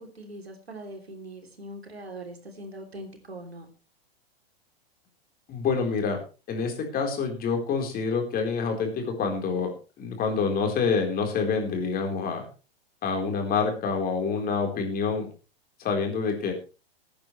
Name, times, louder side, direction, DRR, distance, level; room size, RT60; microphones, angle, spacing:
voice 1, 0.0-3.7, right 1 dB, 85° right, 4 dB, 3.2 m, -41 dB
voice 2, 5.5-6.2 6.5-9.7 10.0-12.5 13.0-15.3 15.8-16.5, left 5 dB, 30° left, 3 dB, 4.1 m, -27 dB
19.5 x 9.6 x 3.2 m, 0.33 s
figure-of-eight pair, 100°, 31 cm